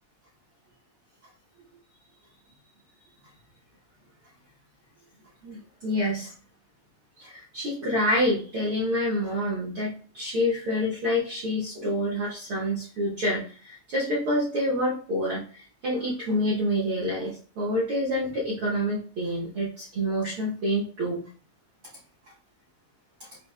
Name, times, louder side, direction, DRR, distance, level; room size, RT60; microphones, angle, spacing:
voice 1, 5.4-6.3 7.2-21.2, equal, 80° right, -5 dB, 1.2 m, -27 dB
6.0 x 3.2 x 2.3 m, 0.41 s
omnidirectional pair, 3.8 m